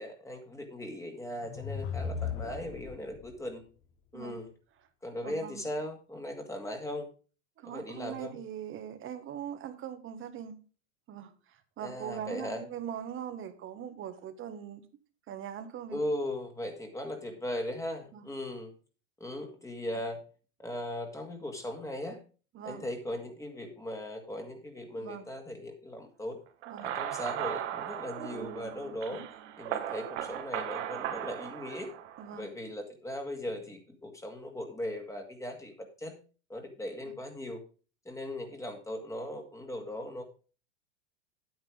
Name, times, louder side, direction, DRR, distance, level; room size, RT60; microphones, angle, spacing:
voice 1, 0.0-3.6 4.1-4.5 5.0-7.1 7.6-8.4 11.8-12.6 15.9-18.7 19.2-20.2 20.6-22.2 22.7-26.4 26.8-29.2 29.6-31.9 32.3-36.2 36.5-37.6 38.1-40.2, left 1 dB, 10° left, 3 dB, 2.0 m, -38 dB
sound 1, 1.4-3.4, left 6 dB, 35° left, 1.4 m, -37 dB
voice 2, 5.2-5.6 7.6-10.5 11.1-11.3 11.8-14.8 15.3-16.0 18.1-18.2 19.9-20.0 22.5-22.8 25.0-25.2 26.7-26.9 29.1-29.3 32.2-32.5, right 9 dB, 35° right, 10 dB, 1.4 m, -41 dB
sound 2, 26.6-32.4, right 11 dB, 70° right, 1.5 m, -37 dB
9.1 x 8.9 x 3.5 m, 0.36 s
hypercardioid pair, 110°, 37 cm